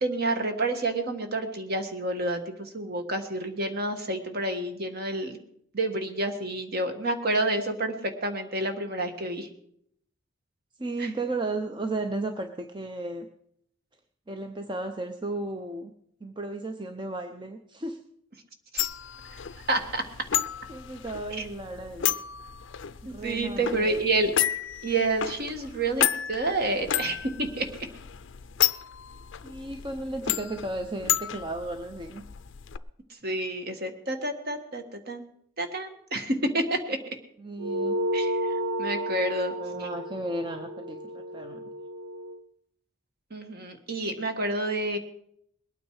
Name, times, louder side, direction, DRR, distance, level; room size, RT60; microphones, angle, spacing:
voice 1, 0.0-5.4 5.7-9.5 11.0-11.1 18.7-18.9 19.3-19.4 19.7-20.0 21.4-21.5 23.1-24.3 24.8-27.7 33.2-35.3 35.6-37.0 38.1-39.9 43.3-45.0, right 2 dB, 45° right, 6 dB, 1.6 m, -29 dB
voice 2, 10.8-13.3 14.3-15.9 16.2-18.0 20.7-22.1 23.0-24.0 29.4-32.2 37.4-38.0 39.6-41.7, right 2 dB, 20° right, 6 dB, 0.7 m, -34 dB
sound 1, 18.8-32.8, left 11 dB, 60° left, 0.5 m, -32 dB
sound 2, 37.6-42.4, right 1 dB, 85° right, 0.9 m, -32 dB
21.0 x 9.2 x 4.8 m, 0.70 s
head